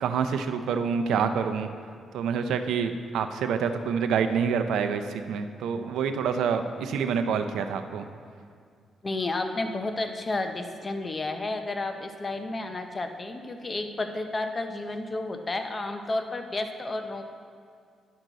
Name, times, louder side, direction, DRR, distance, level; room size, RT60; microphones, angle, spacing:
voice 1, 0.0-1.7 2.1-8.1, right 6 dB, 85° right, 8 dB, 0.5 m, -27 dB
voice 2, 9.0-17.2, left 2 dB, 25° left, 6 dB, 0.7 m, -31 dB
10.0 x 6.1 x 3.9 m, 2.2 s
cardioid pair, 100°, 0 cm